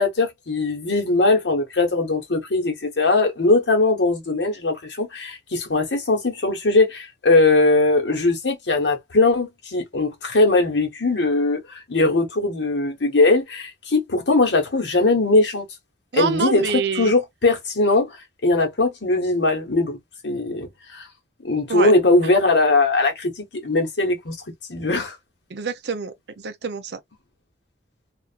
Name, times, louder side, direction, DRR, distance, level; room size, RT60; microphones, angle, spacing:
voice 1, 0.0-15.6 16.1-16.7 17.0-18.2 18.4-20.0 20.2-21.1 21.4-24.4 24.7-25.2, left 2 dB, 75° left, 1.0 m, -20 dB
voice 2, 16.1-17.1 21.7-21.9 25.5-26.1 26.4-27.0, right 5 dB, 65° right, 0.5 m, -25 dB
2.6 x 2.4 x 2.2 m
head